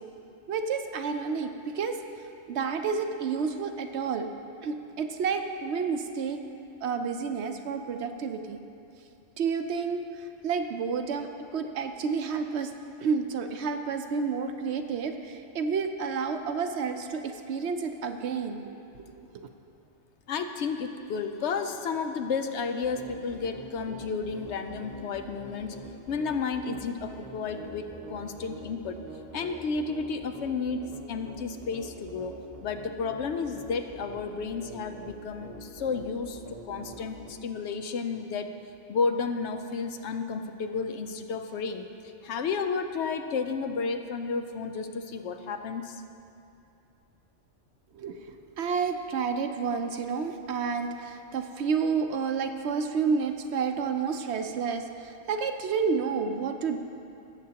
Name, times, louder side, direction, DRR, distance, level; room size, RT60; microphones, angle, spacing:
voice 1, 0.5-2.0 2.5-4.3 4.6-6.4 6.8-8.6 9.4-12.7 13.0-18.6 19.1-19.5 47.9-56.8, right 5 dB, 65° right, 6 dB, 0.8 m, -30 dB
voice 2, 20.3-25.8 26.1-29.0 29.3-36.4 36.6-38.5 38.9-41.9 42.2-46.0, left 5 dB, 70° left, 7 dB, 0.8 m, -32 dB
sound 1, 22.8-37.3, right 2 dB, 30° right, 0.9 m, -45 dB
19.0 x 7.6 x 2.9 m, 2.7 s
omnidirectional pair, 1.3 m